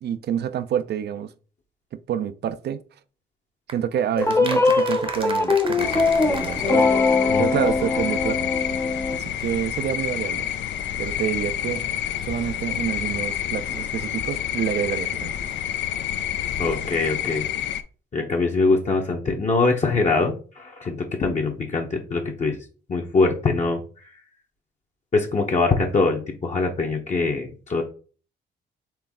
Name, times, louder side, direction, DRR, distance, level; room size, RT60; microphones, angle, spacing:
voice 1, 0.0-1.3 1.9-2.8 3.7-6.9 7.4-8.5 9.2-10.5 11.0-11.8 12.2-15.3, right 9 dB, 55° right, 0.5 m, -28 dB
sound 1, 3.7-7.4 7.7-7.8 8.0-8.1 8.2-8.3, right 3 dB, 25° right, 0.8 m, -36 dB
sound 2, 4.2-9.2, left 3 dB, 15° left, 0.6 m, -21 dB
sound 3, 5.8-17.8, left 10 dB, 65° left, 0.5 m, -29 dB
voice 2, 16.6-17.5 18.1-22.6 22.9-23.8 25.1-27.8, left 3 dB, 35° left, 0.9 m, -23 dB
4.6 x 3.2 x 3.6 m
cardioid pair, 90°, 20 cm